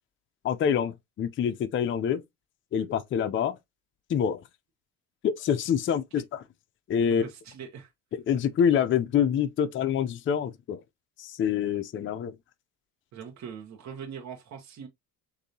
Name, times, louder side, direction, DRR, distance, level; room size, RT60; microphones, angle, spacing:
voice 1, 0.4-2.2 2.7-3.6 4.1-4.4 5.2-6.4 6.9-7.2 8.3-10.8 11.2-12.3, left 8 dB, 35° left, 0.5 m, -26 dB
voice 2, 7.1-7.9 13.1-14.9, right 7 dB, 50° right, 1.1 m, -42 dB
6.7 x 2.7 x 2.7 m
cardioid pair, 130°, 36 cm